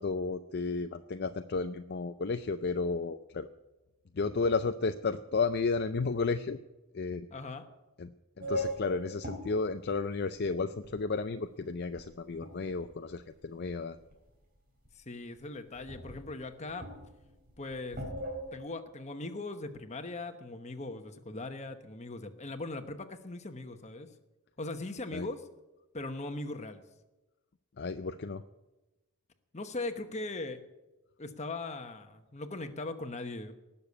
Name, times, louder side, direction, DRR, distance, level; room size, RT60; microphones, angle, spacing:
voice 1, 0.0-3.5 4.1-6.6 6.9-7.3 8.0-8.1 8.4-14.0 25.1-25.3 27.8-28.4, left 4 dB, 45° left, 9 dB, 0.5 m, -33 dB
voice 2, 7.3-7.7 14.9-16.9 17.6-18.0 18.5-24.1 24.6-25.4 25.9-26.8 29.5-30.6 31.2-33.5, left 2 dB, 30° left, 8 dB, 1.1 m, -39 dB
sound 1, 8.4-11.3 11.8-13.1 13.7-14.3 14.6-14.7 14.8-14.9 15.4-15.5 15.7-18.6, equal, 40° right, 3.8 m, -40 dB
19.0 x 6.9 x 8.3 m, 1.1 s
head